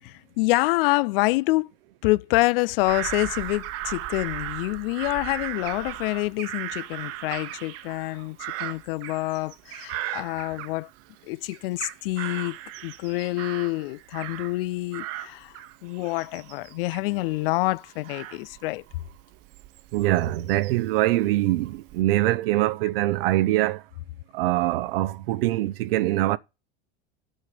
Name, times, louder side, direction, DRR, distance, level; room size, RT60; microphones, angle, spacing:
voice 1, 0.1-1.7 2.0-10.9 11.3-12.6 12.8-18.8, left 21 dB, 70° left, 0.5 m, -27 dB
Bird vocalization bird call bird song / Crow, 2.8-11.2 11.5-14.6 14.9-20.9 21.5-22.0, right 13 dB, 55° right, 1.1 m, -37 dB
voice 2, 19.9-23.8 24.3-26.4, right 16 dB, 75° right, 0.8 m, -23 dB
7.6 x 6.4 x 6.7 m
hypercardioid pair, 100°, 29 cm